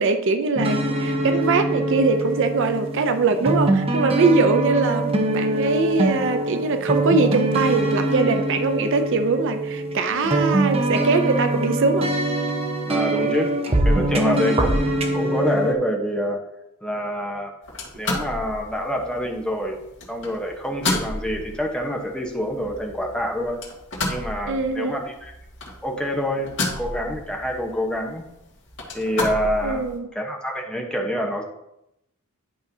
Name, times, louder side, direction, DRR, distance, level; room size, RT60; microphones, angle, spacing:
voice 1, 0.0-12.1 14.2-14.5 24.5-25.0 29.6-30.1, right 4 dB, 60° right, 9 dB, 0.5 m, -22 dB
sound 1, 0.5-15.7, right 1 dB, 30° right, 0.8 m, -23 dB
voice 2, 12.9-13.5 13.8-16.4 16.8-17.5 17.9-19.8 20.1-23.6 24.1-25.3 25.8-28.2 28.9-29.9 30.1-31.4, equal, 5° left, 1 dB, 1.0 m, -26 dB
sound 2, 17.6-30.0, left 2 dB, 60° left, 1.9 m, -32 dB
10.5 x 5.3 x 2.7 m, 0.84 s
head